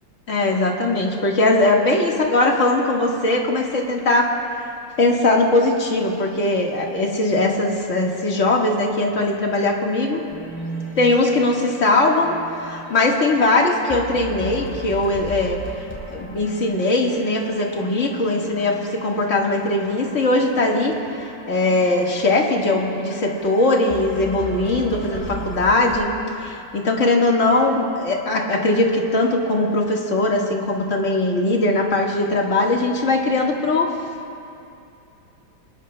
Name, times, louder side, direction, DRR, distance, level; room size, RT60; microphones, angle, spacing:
voice 1, 0.3-4.3 5.0-10.2 11.0-15.6 16.1-26.1 26.4-33.9, left 2 dB, 40° left, -1 dB, 1.9 m, -20 dB
sound 1, 10.3-26.1, right 2 dB, 5° left, 2.4 m, -37 dB
25.0 x 20.5 x 2.2 m, 2.6 s
omnidirectional pair, 2.1 m